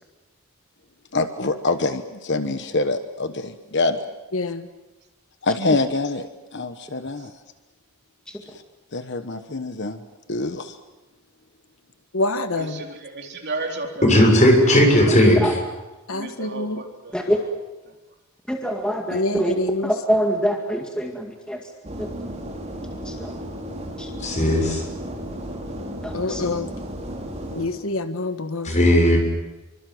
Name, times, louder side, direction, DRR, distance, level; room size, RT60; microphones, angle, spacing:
voice 1, 1.1-4.0 5.4-7.3 8.5-8.6 8.9-10.0 10.3-10.8, left 3 dB, 55° left, 9 dB, 1.2 m, -25 dB
voice 2, 4.3-4.7 12.1-12.8 16.1-16.8 19.1-19.9 26.1-26.7 27.5-28.7, left 2 dB, 70° left, 9 dB, 1.4 m, -26 dB
voice 3, 12.6-14.2 16.1-17.1, right 2 dB, 50° right, 2 dB, 4.1 m, -33 dB
voice 4, 14.0-15.4 24.2-24.8 28.6-29.2, equal, 35° left, 2 dB, 6.4 m, -16 dB
voice 5, 15.1-15.5 17.1-17.4 18.5-19.6 19.8-21.6 22.0-22.1 23.0-23.3 24.0-24.1 26.0-26.4, equal, 5° left, 1 dB, 2.1 m, -25 dB
sound 1, 21.8-27.7, equal, 30° right, 4.4 m, -34 dB
26.5 x 24.5 x 7.9 m, 1.1 s
head